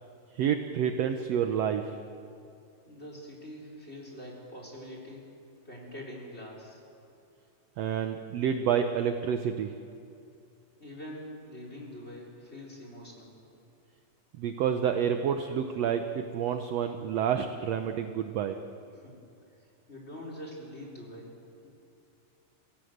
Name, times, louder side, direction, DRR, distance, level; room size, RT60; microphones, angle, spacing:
voice 1, 0.3-1.9 7.8-9.7 14.4-18.6, right 8 dB, 75° right, 7 dB, 1.5 m, -29 dB
voice 2, 2.9-5.2 5.6-6.8 10.8-13.4 18.9-19.2 19.9-21.3, left 1 dB, 15° left, -1 dB, 4.2 m, -44 dB
27.5 x 16.5 x 8.0 m, 2.6 s
omnidirectional pair, 4.0 m